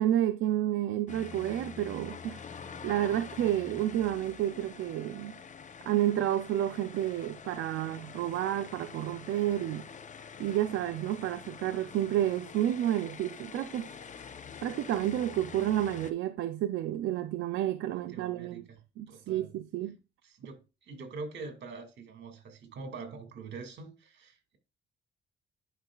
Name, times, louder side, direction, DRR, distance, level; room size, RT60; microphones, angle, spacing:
voice 1, 0.0-2.4 2.8-5.4 5.8-9.8 10.4-13.9 14.6-18.6 19.0-20.0, right 12 dB, 85° right, 0.5 m, -30 dB
sound 1, 1.1-16.1, left 6 dB, 40° left, 0.8 m, -46 dB
voice 2, 17.8-18.6 19.1-19.5 20.2-24.6, right 4 dB, 65° right, 2.2 m, -44 dB
11.0 x 5.2 x 2.4 m
cardioid pair, 90°, 20 cm